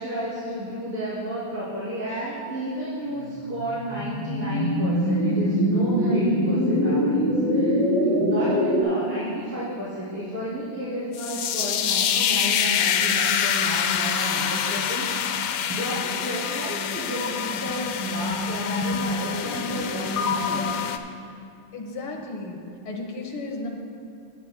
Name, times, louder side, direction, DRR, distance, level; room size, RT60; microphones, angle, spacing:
voice 1, 0.0-7.8 8.2-21.0, equal, 80° right, -13 dB, 3.8 m, -32 dB
sound 1, 3.3-8.8, equal, 55° right, 2.0 m, -23 dB
sound 2, 11.1-21.0, left 7 dB, 90° left, 0.9 m, -26 dB
voice 2, 21.7-22.6 22.9-23.7, left 2 dB, 75° left, 0 dB, 2.1 m, -34 dB
19.5 x 9.3 x 2.2 m, 2.5 s
omnidirectional pair, 2.4 m